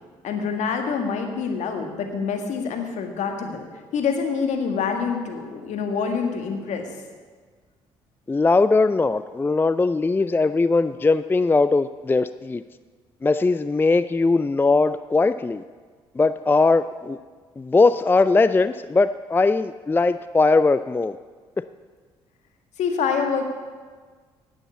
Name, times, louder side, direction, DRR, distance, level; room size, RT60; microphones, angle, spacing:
voice 1, 0.2-3.6 3.9-6.9 22.8-23.5, left 5 dB, 60° left, 4 dB, 1.8 m, -26 dB
voice 2, 8.3-12.6 13.2-15.6 16.2-17.2 17.6-21.2 21.6-21.7, left 3 dB, 15° left, 14 dB, 0.4 m, -20 dB
9.9 x 8.1 x 8.3 m, 1.5 s
hypercardioid pair, 55°, 13 cm